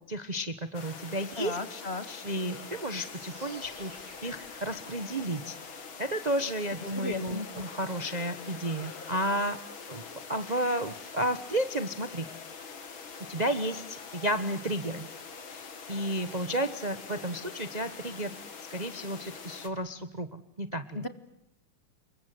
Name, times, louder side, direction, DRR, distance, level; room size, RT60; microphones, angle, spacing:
voice 1, 0.1-1.8 2.1-5.6 6.0-9.6 9.9-10.0 10.3-12.2 13.3-15.1 15.5-18.4 18.7-21.0, right 1 dB, 25° right, 11 dB, 1.1 m, -32 dB
sound 1, 0.7-19.7, left 5 dB, 75° left, 3.3 m, -44 dB
voice 2, 1.4-2.0 6.9-7.7 20.9-21.1, left 2 dB, 30° left, 11 dB, 2.0 m, -35 dB
sound 2, 3.0-9.0, right 1 dB, 60° right, 8.6 m, -54 dB
28.0 x 24.0 x 7.8 m, 0.77 s
omnidirectional pair, 2.2 m